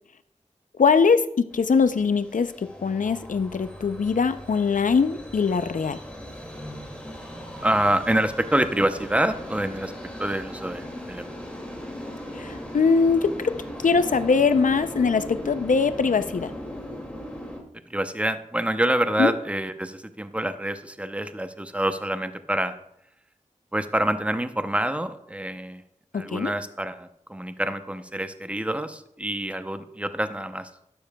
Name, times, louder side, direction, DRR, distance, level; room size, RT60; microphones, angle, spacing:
voice 1, 0.8-1.2 1.5-6.0 12.3-13.5 13.8-16.5 19.2-19.3 26.1-26.5, left 5 dB, 90° left, 12 dB, 0.5 m, -22 dB
sound 1, 1.5-17.6, equal, 10° left, 2.2 m, -38 dB
voice 2, 7.6-9.9 10.2-11.4 17.9-22.8 23.7-25.8 26.1-30.7, right 1 dB, 10° right, 10 dB, 0.6 m, -26 dB
12.5 x 9.7 x 2.3 m, 0.76 s
wide cardioid pair, 60°, 13 cm